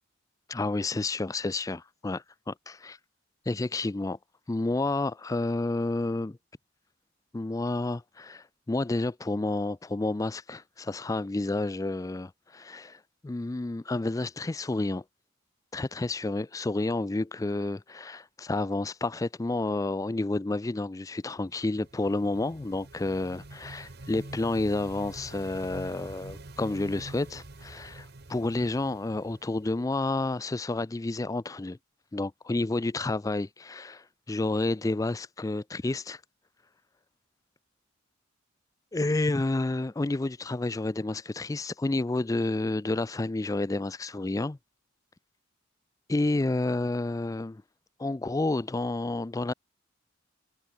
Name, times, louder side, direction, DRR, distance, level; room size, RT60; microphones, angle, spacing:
voice 1, 0.5-3.0 3.5-4.2 4.5-6.4 7.3-15.0 15.7-31.8 32.1-36.2 38.9-44.6 46.1-47.6 48.0-49.5, left 2 dB, 15° left, 0.4 m, -30 dB
sound 1, 21.4-30.2, right 2 dB, 55° right, 1.3 m, -46 dB
head